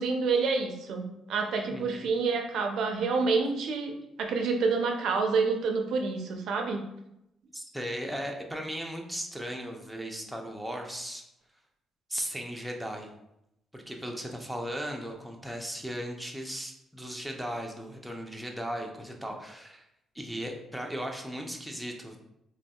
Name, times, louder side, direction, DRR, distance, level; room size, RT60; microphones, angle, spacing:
voice 1, 0.0-6.9, right 4 dB, 75° right, 3 dB, 0.4 m, -28 dB
voice 2, 1.7-2.0 7.5-11.2 12.1-13.1 13.7-19.9 20.1-22.2, equal, ahead, 1 dB, 0.5 m, -37 dB
3.4 x 2.6 x 2.2 m, 0.83 s
cardioid pair, 90°, 0 cm